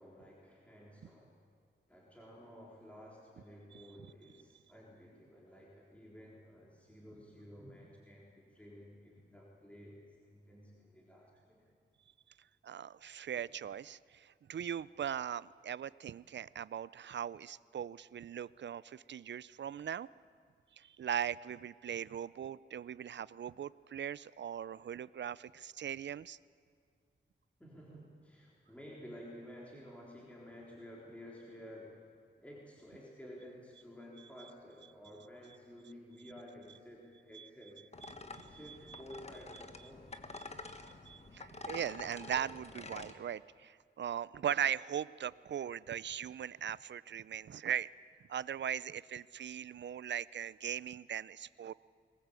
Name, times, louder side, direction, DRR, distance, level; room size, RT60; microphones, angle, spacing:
voice 1, 0.0-1.4 1.9-11.6 13.3-13.4 27.6-32.1 32.4-37.8 38.4-40.1, equal, 5° left, -4 dB, 3.9 m, -53 dB
voice 2, 12.6-20.1 20.8-26.4 37.3-37.5 38.3-39.0 40.4-40.7 41.1-47.9 48.3-51.7, right 9 dB, 65° right, 20 dB, 0.5 m, -39 dB
sound 1, 37.9-43.1, left 3 dB, 35° left, 1.4 m, -48 dB
22.0 x 19.0 x 8.3 m, 2.1 s
wide cardioid pair, 95°, 20 cm